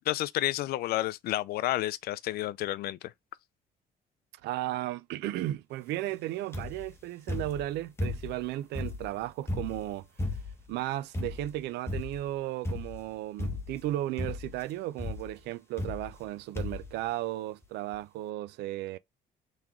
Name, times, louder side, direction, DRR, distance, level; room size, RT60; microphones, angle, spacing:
voice 1, 0.1-3.1, left 15 dB, 65° left, 0.4 m, -30 dB
voice 2, 4.4-10.1 10.7-19.0, right 15 dB, 80° right, 0.4 m, -35 dB
sound 1, 6.5-6.9 7.3-8.4 8.7-10.7 11.1-11.6 11.9-12.3 12.7-13.1 13.4-13.9 14.2-14.6 15.0-15.3 15.8-16.3 16.6-16.9 17.6-17.7 17.9-18.0, left 2 dB, 15° left, 0.9 m, -35 dB
3.7 x 3.1 x 3.5 m
cardioid pair, 110°, 17 cm